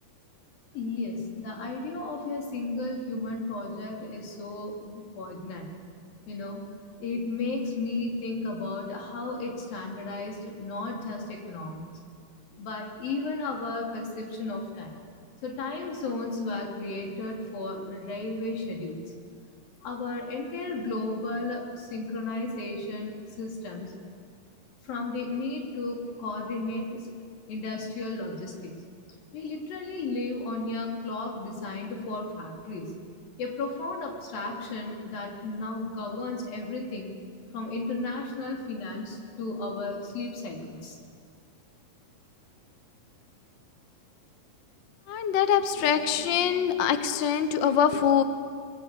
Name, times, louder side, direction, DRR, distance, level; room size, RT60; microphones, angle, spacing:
voice 1, 0.7-5.7 6.3-6.6 7.0-11.9 12.5-15.0 15.4-19.0 19.8-23.9 24.8-27.1 27.5-28.7 29.3-32.9 33.4-37.2 37.5-41.0, left 2 dB, 85° left, 0 dB, 4.9 m, -34 dB
voice 2, 45.1-48.2, left 8 dB, 65° left, 9 dB, 1.1 m, -24 dB
24.5 x 20.5 x 8.3 m, 2.1 s
omnidirectional pair, 4.0 m